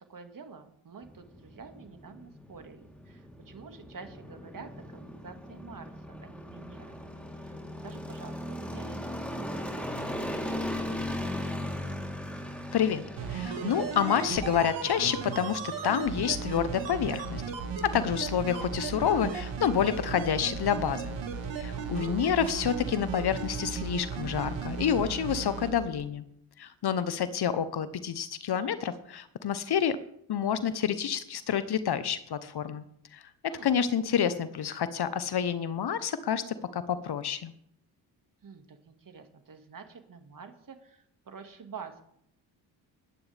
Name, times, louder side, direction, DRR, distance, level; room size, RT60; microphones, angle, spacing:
voice 1, 0.0-6.9 7.5-11.9 21.8-22.2 33.5-33.8 38.4-42.0, right 5 dB, 40° right, 6 dB, 2.3 m, -48 dB
sound 1, 1.0-20.4, left 1 dB, ahead, 3.7 m, -39 dB
voice 2, 12.7-13.0 13.3-17.4 17.8-21.2 21.6-26.2 26.6-30.0 30.3-32.8 33.1-33.2 33.6-37.5, left 8 dB, 50° left, 13 dB, 1.2 m, -28 dB
sound 2, 13.1-25.7 26.0-26.1, right 5 dB, 60° right, 2.4 m, -35 dB
20.0 x 10.5 x 3.6 m, 0.70 s
hypercardioid pair, 50°, 48 cm